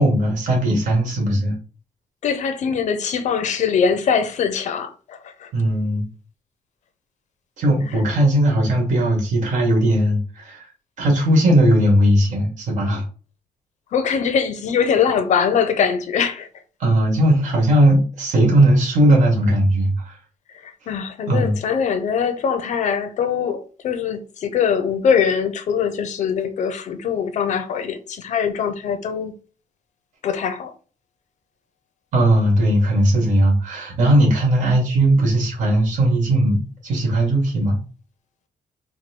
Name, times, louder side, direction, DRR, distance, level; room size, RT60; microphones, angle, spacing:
voice 1, 0.0-1.6 5.5-6.1 7.6-10.7 11.0-13.0 16.8-20.2 21.3-21.5 32.1-37.8, right 1 dB, 65° right, 1.9 m, -18 dB
voice 2, 2.2-5.5 13.9-16.5 20.6-29.3 30.2-30.7, left 7 dB, 60° left, 0.7 m, -22 dB
4.5 x 2.2 x 4.5 m
cardioid pair, 155°, 14 cm